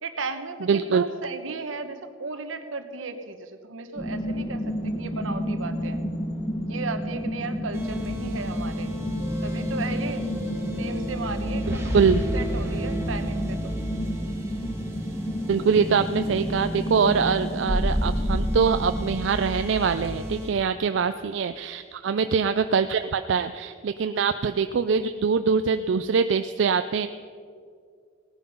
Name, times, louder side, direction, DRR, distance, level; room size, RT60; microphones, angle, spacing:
voice 1, 0.0-6.0 6.6-8.9 9.4-10.3 10.8-12.0 12.3-13.7 20.9-21.1 22.1-22.4, right 4 dB, 85° right, 9 dB, 1.0 m, -35 dB
voice 2, 0.6-1.0 11.9-12.3 15.5-27.1, right 5 dB, 65° right, 10 dB, 0.4 m, -23 dB
sound 1, 4.0-19.2, equal, 25° left, 1.3 m, -31 dB
sound 2, 7.7-20.5, equal, 15° right, 1.5 m, -31 dB
17.5 x 9.4 x 5.4 m, 2.2 s
head